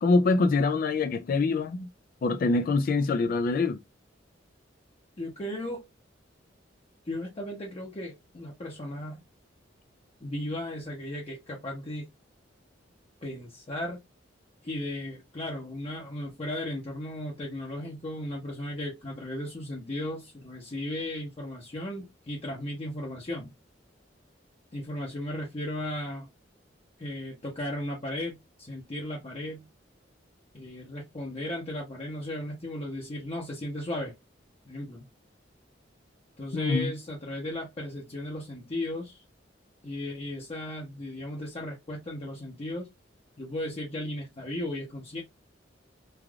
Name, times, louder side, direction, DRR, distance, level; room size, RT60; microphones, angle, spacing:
voice 1, 0.0-1.9 2.2-3.8 36.5-36.9, left 3 dB, 50° left, 0.3 m, -24 dB
voice 2, 5.2-5.9 7.1-9.2 10.2-12.1 13.2-14.0 14.6-23.5 24.7-26.3 27.0-29.7 30.5-34.1 34.6-35.1 36.4-39.2 39.8-42.9 43.4-45.2, left 1 dB, 35° left, 0.7 m, -36 dB
3.3 x 2.4 x 2.3 m
head